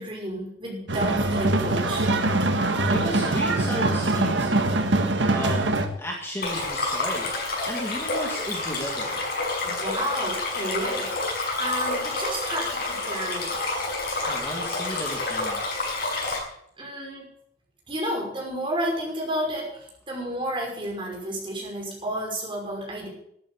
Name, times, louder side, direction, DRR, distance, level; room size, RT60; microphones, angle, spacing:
voice 1, 0.0-2.1 9.6-13.5 16.8-17.2 17.9-23.1, equal, 30° right, -1 dB, 5.8 m, -31 dB
sound 1, 0.9-5.9, right 2 dB, 80° right, 1.6 m, -23 dB
voice 2, 2.8-4.8 5.3-7.3 7.6-9.2 14.3-15.6, equal, 15° left, -1 dB, 2.1 m, -34 dB
Stream, 6.4-16.4, left 2 dB, 55° left, 6.1 m, -29 dB
12.5 x 11.0 x 7.1 m, 0.71 s
head